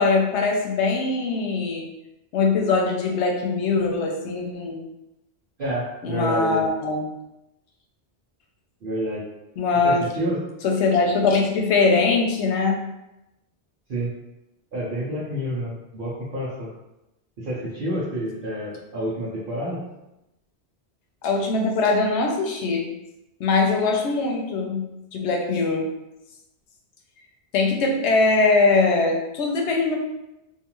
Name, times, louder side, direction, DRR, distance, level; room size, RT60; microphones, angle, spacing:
voice 1, 0.0-1.9 2.3-4.8 6.0-7.0 9.6-10.0 10.6-12.8 21.2-22.8 23.4-25.9 27.5-30.0, left 3 dB, 90° left, 1 dB, 0.9 m, -21 dB
voice 2, 5.6-6.6 8.8-9.2 9.8-10.4 13.9-14.1 14.7-16.7 17.4-19.8, equal, 55° right, -9 dB, 0.8 m, -28 dB
2.5 x 2.4 x 2.9 m, 0.92 s
omnidirectional pair, 1.1 m